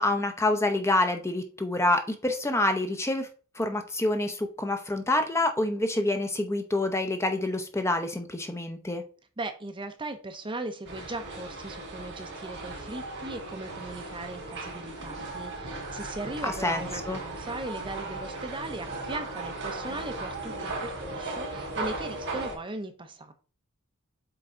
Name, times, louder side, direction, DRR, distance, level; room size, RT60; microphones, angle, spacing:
voice 1, 0.0-3.3 3.6-9.0 16.4-17.2, left 2 dB, 15° left, 6 dB, 0.7 m, -27 dB
voice 2, 9.4-23.3, right 2 dB, 25° right, 7 dB, 0.8 m, -38 dB
sound 1, 10.8-22.5, right 2 dB, 55° right, 3.4 m, -37 dB
7.9 x 3.7 x 3.8 m, 0.37 s
head